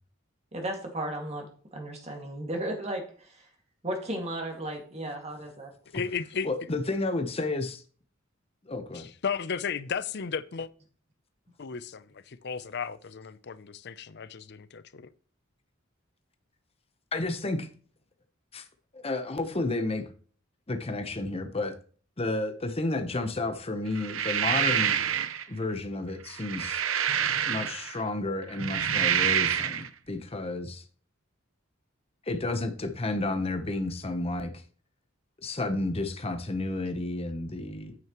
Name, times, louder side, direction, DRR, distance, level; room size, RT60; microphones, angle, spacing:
voice 1, 0.5-3.5 3.8-5.7, right 1 dB, 30° right, 2.1 m, -35 dB
voice 2, 5.9-6.5 8.9-10.7 11.6-15.1, left 6 dB, 55° left, 0.6 m, -34 dB
voice 3, 6.4-7.8 8.7-9.1 17.1-17.7 18.5-18.7 18.9-20.0 20.7-21.7 22.2-25.0 25.5-26.8 27.5-30.8 32.3-34.6 35.4-37.9, left 2 dB, 30° left, 0.9 m, -31 dB
sound 1, 24.0-25.4 26.3-28.0 28.5-29.9, right 9 dB, 80° right, 0.9 m, -27 dB
9.0 x 9.0 x 3.0 m
head